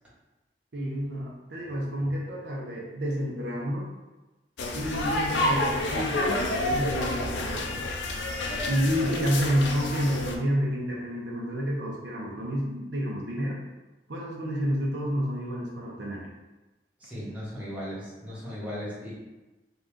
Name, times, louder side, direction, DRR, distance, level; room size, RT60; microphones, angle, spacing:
voice 1, 0.7-3.9 4.7-7.8 8.7-13.6 14.1-16.3, equal, 70° right, -3 dB, 0.7 m, -29 dB
sound 1, 4.6-10.4, left 1 dB, 80° left, 0.5 m, -29 dB
voice 2, 17.0-19.1, equal, 10° right, -10 dB, 1.2 m, -37 dB
3.8 x 2.3 x 3.7 m, 1.1 s
head